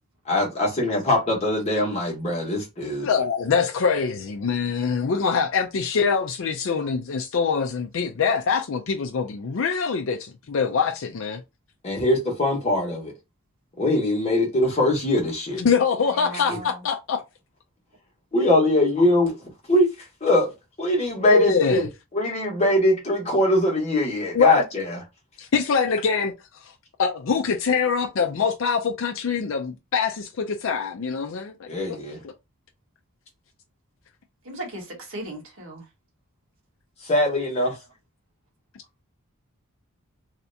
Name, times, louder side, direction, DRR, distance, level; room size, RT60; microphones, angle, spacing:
voice 1, 0.2-3.1 11.8-13.1 13.8-15.6 16.3-16.6 18.3-20.5 20.8-21.9 22.1-25.0 31.7-32.2 37.0-37.8, left 1 dB, 30° left, 1.3 m, -22 dB
voice 2, 3.0-11.4 15.6-17.2 21.3-21.9 24.3-24.6 25.4-26.3 26.6-26.7 27.0-31.7, left 5 dB, 65° left, 0.4 m, -24 dB
voice 3, 16.0-16.8 34.4-35.9, right 2 dB, 70° right, 1.5 m, -37 dB
3.2 x 2.8 x 2.7 m
head